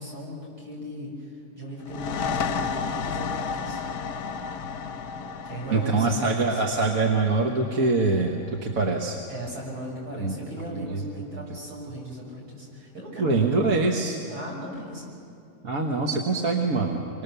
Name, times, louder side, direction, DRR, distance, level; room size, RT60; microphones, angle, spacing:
voice 1, 0.0-3.8 5.4-6.6 9.3-14.0 14.3-15.1, equal, 80° right, -3 dB, 7.1 m, -37 dB
sound 1, 1.8-9.2, left 6 dB, 90° left, 1.5 m, -33 dB
voice 2, 5.7-8.4 8.6-9.2 10.2-10.3 10.9-11.0 13.2-14.2 15.6-17.2, right 3 dB, 60° right, 1 dB, 1.8 m, -24 dB
27.0 x 23.5 x 6.9 m, 2.5 s
omnidirectional pair, 1.7 m